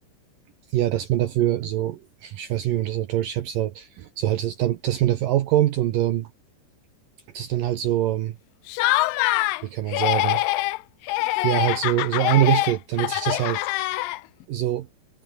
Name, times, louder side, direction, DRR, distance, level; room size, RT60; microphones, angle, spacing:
voice 1, 0.7-6.3 7.3-8.4 9.6-10.4 11.4-13.7 14.5-14.8, right 13 dB, 70° right, 2.3 m, -24 dB
Laughter, 8.7-9.6 9.9-10.8 11.1-14.4, left 18 dB, 85° left, 2.0 m, -24 dB
omnidirectional pair, 5.0 m